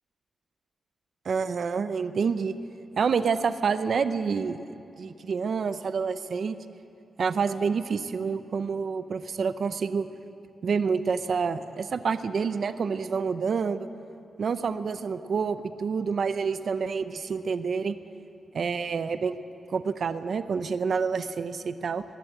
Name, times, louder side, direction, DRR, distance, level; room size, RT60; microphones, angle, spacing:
voice 1, 1.2-2.5 3.0-4.6 5.0-6.6 7.2-10.1 10.6-13.9 14.4-18.0 18.5-19.4 19.7-22.0, right 5 dB, 50° right, 11 dB, 0.6 m, -28 dB
21.0 x 17.0 x 7.9 m, 2.7 s
wide cardioid pair, 175°, 0 cm